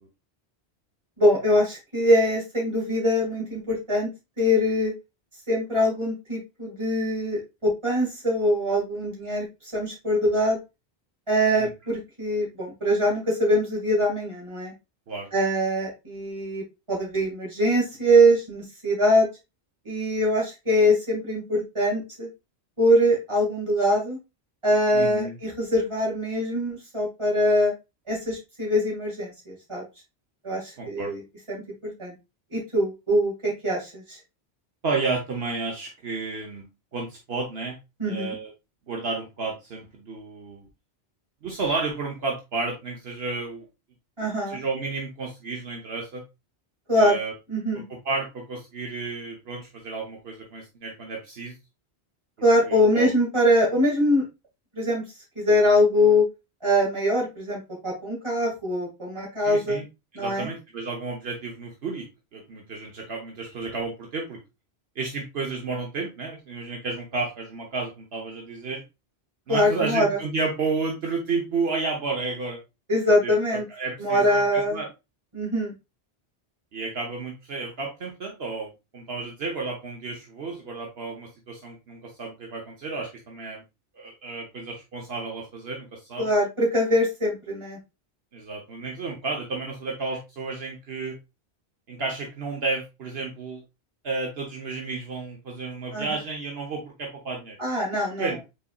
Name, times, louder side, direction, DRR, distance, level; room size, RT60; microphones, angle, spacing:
voice 1, 1.2-4.1 4.4-4.9 5.5-9.5 9.7-10.6 11.3-14.7 15.3-19.3 19.9-22.3 22.8-24.2 24.6-27.7 28.1-29.8 30.4-31.2 31.5-32.1 32.5-34.2 38.0-38.3 44.2-44.6 46.9-47.2 47.5-47.8 52.4-54.3 54.7-55.0 55.4-56.3 56.6-59.8 60.1-60.5 69.5-70.2 72.9-73.6 74.0-74.8 75.3-75.7 86.2-87.8 95.9-96.1 97.6-98.3, equal, 25° right, -3 dB, 2.2 m, -23 dB
voice 2, 24.9-25.3 30.8-31.1 34.8-36.7 36.9-37.8 38.1-38.5 38.9-40.7 41.4-43.6 44.5-46.2 47.0-47.3 48.0-51.6 52.7-53.1 59.4-59.9 60.1-62.1 62.3-64.4 64.9-68.8 69.5-72.6 73.2-74.9 76.7-83.6 83.9-86.3 88.3-91.1 91.9-93.6 94.0-97.6 98.2-98.4, right 3 dB, 70° right, 0 dB, 1.2 m, -32 dB
5.4 x 4.1 x 2.3 m, 0.25 s
omnidirectional pair, 1.1 m